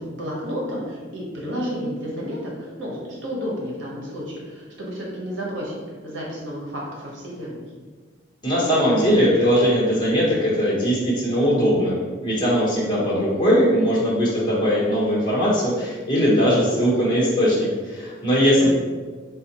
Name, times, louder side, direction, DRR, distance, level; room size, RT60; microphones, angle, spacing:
voice 1, 0.0-5.8 6.0-7.6 18.6-18.7, equal, 80° right, -4 dB, 1.0 m, -31 dB
voice 2, 8.4-18.7, equal, 25° left, -7 dB, 1.0 m, -20 dB
4.1 x 2.3 x 2.9 m, 1.4 s
head